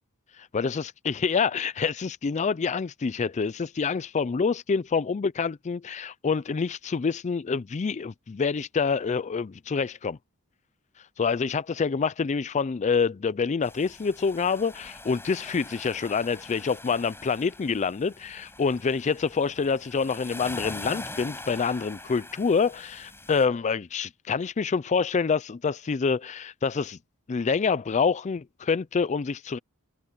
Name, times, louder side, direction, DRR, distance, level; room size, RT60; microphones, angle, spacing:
voice 1, 0.5-10.2 11.2-27.0 27.3-29.6, left 5 dB, 30° left, 0.4 m, -27 dB
sound 1, 13.6-23.5, left 2 dB, 10° left, 4.9 m, -43 dB
head